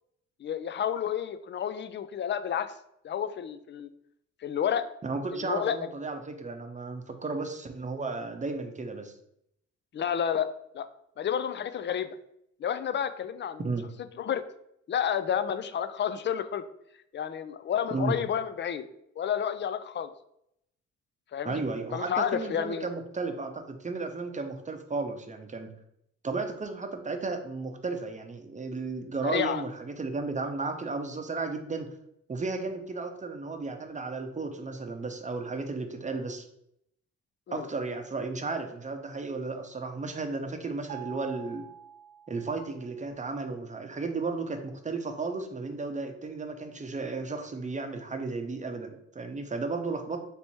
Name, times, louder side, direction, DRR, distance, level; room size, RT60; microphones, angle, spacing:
voice 1, 0.4-2.7 3.0-3.9 4.4-4.9 5.3-5.8 9.9-10.5 10.7-10.9 11.2-12.2 12.6-13.7 14.2-14.4 14.9-16.6 17.1-18.8 19.2-20.1 21.3-21.6 21.9-22.9 29.2-29.6 37.5-37.7, left 8 dB, 40° left, 11 dB, 0.4 m, -30 dB
voice 2, 5.0-9.1 13.6-13.8 17.9-18.1 21.4-25.7 26.2-31.9 32.3-36.5 37.5-41.6 42.3-50.2, right 3 dB, 25° right, 5 dB, 0.7 m, -34 dB
Mallet percussion, 40.9-42.9, right 10 dB, 60° right, 0.5 m, -45 dB
3.4 x 3.0 x 4.2 m, 0.75 s
cardioid pair, 70°, 29 cm